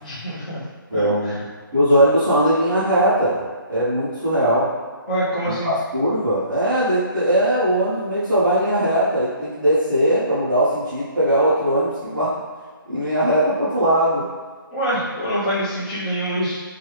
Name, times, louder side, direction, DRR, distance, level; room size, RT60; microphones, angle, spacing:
voice 1, 0.0-0.6 0.9-1.4 5.1-5.7 14.7-16.6, equal, 20° left, -9 dB, 0.8 m, -25 dB
voice 2, 0.9-1.3 1.7-3.4 3.7-4.7 5.4-12.3 12.9-14.3, right 1 dB, 5° right, -17 dB, 0.4 m, -19 dB
3.0 x 2.3 x 3.2 m, 1.5 s
hypercardioid pair, 175°, 12 cm